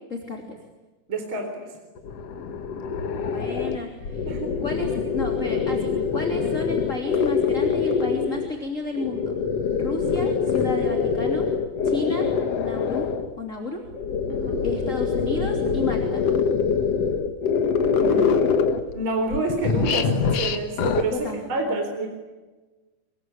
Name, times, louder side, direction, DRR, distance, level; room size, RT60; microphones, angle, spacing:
voice 1, 0.1-0.4 3.2-4.3 4.6-9.3 9.7-11.4 11.8-12.3 12.5-13.1 13.4-13.8 14.6-16.2 21.1-21.8, left 3 dB, 20° left, 2 dB, 3.1 m, -32 dB
voice 2, 1.1-1.7 4.3-4.6 14.3-14.6 17.9-18.4 18.9-22.1, right 2 dB, 30° right, 4 dB, 4.4 m, -28 dB
sound 1, 2.0-8.5 9.0-13.3 13.9-19.0 19.3-21.0, left 5 dB, 55° left, 2.1 m, -24 dB
26.0 x 23.0 x 9.7 m, 1.2 s
omnidirectional pair, 4.4 m